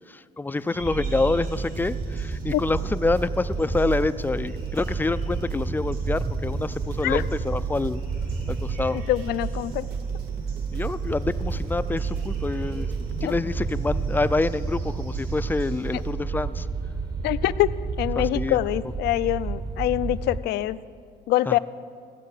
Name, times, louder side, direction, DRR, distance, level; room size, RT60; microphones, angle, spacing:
voice 1, 0.1-8.0 8.5-9.0 10.7-12.9 13.2-16.7 18.2-18.6 21.5-21.6, left 3 dB, 10° left, 14 dB, 0.3 m, -27 dB
sound 1, 0.5-16.1, right 1 dB, 65° right, 3.8 m, -47 dB
sound 2, 0.8-20.4, right 4 dB, 25° right, 0.8 m, -30 dB
sound 3, 1.4-13.4, right 7 dB, 85° right, 0.7 m, -44 dB
voice 2, 8.9-9.9 13.2-13.3 17.2-17.7 18.0-20.8 21.3-21.6, left 15 dB, 75° left, 16 dB, 0.4 m, -24 dB
15.5 x 8.2 x 6.6 m, 2.2 s
cardioid pair, 110°, 17 cm